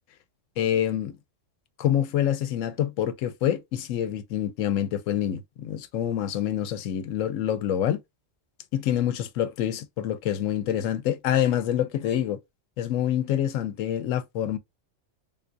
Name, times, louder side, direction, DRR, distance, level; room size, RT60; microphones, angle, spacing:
voice 1, 0.6-1.2 1.8-8.0 8.7-12.4 12.8-14.6, left 10 dB, 85° left, 0.9 m, -26 dB
3.7 x 2.3 x 2.5 m
omnidirectional pair, 1.3 m